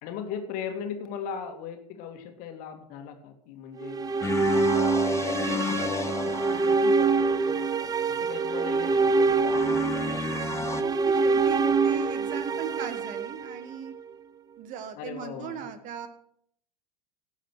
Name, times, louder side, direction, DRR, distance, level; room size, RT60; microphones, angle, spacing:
voice 1, 0.0-4.0 4.4-4.7 5.1-7.8 8.1-10.7 15.0-15.7, left 7 dB, 45° left, 5 dB, 2.5 m, -39 dB
sound 1, 3.8-14.0, right 4 dB, 20° right, 0.6 m, -25 dB
sound 2, 4.2-7.4 9.4-10.8, left 4 dB, 15° left, 0.9 m, -32 dB
voice 2, 10.7-13.9 14.6-16.1, right 8 dB, 40° right, 11 dB, 1.5 m, -38 dB
17.5 x 7.4 x 6.4 m, 0.70 s
figure-of-eight pair, 85°, 21 cm